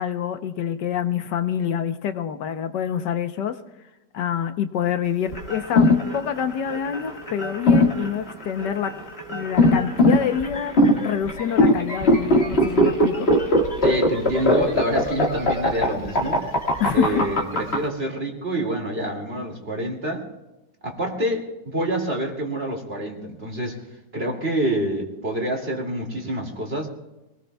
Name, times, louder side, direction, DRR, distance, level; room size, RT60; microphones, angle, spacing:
voice 1, 0.0-3.6 4.1-5.9 6.1-8.9 9.3-10.7 11.0-13.3 16.8-17.3, left 8 dB, 80° left, 8 dB, 1.5 m, -26 dB
sound 1, 5.3-17.8, left 1 dB, 35° left, 1.9 m, -20 dB
voice 2, 13.8-16.4 16.9-20.3 20.8-23.8 24.1-26.9, right 1 dB, 35° right, 1 dB, 2.6 m, -27 dB
26.0 x 19.5 x 2.3 m, 0.99 s
omnidirectional pair, 1.9 m